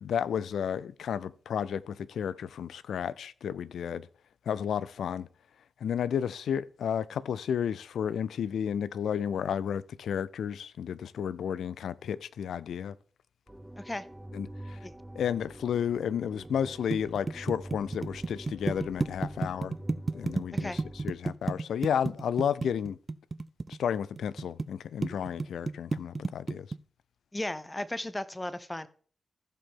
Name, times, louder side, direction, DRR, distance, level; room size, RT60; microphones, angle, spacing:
voice 1, 0.0-4.1 4.5-5.3 5.8-12.9 14.3-14.8 15.2-19.8 20.1-23.0 23.7-26.7, left 8 dB, 80° left, 0.4 m, -32 dB
sound 1, 13.5-21.1, right 1 dB, 10° right, 0.9 m, -46 dB
voice 2, 13.8-14.1 14.8-14.9 20.5-20.8 27.3-28.9, left 1 dB, 20° left, 1.0 m, -35 dB
sound 2, 16.5-24.7 25.0-26.8, right 3 dB, 40° right, 0.5 m, -31 dB
15.5 x 5.2 x 3.7 m
supercardioid pair, 40°, 0 cm